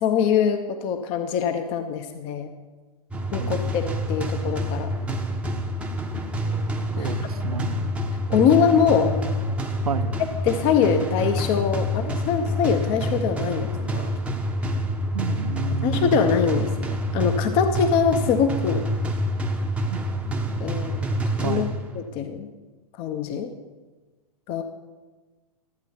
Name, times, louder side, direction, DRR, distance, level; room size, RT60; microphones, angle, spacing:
voice 1, 0.0-2.5 3.3-4.9 6.4-7.2 8.3-9.1 10.4-14.1 15.8-18.8 20.6-21.7 22.0-22.5 23.0-23.5 24.5-24.6, left 7 dB, 30° left, 8 dB, 0.6 m, -23 dB
sound 1, 3.1-22.1, equal, 5° right, 0.7 m, -27 dB
voice 2, 3.3-3.8 7.0-7.8 9.8-10.2 15.1-16.2 19.9-20.0 21.4-21.8, right 5 dB, 75° right, 12 dB, 0.7 m, -30 dB
12.5 x 8.9 x 4.5 m, 1.3 s
figure-of-eight pair, 100°, 19 cm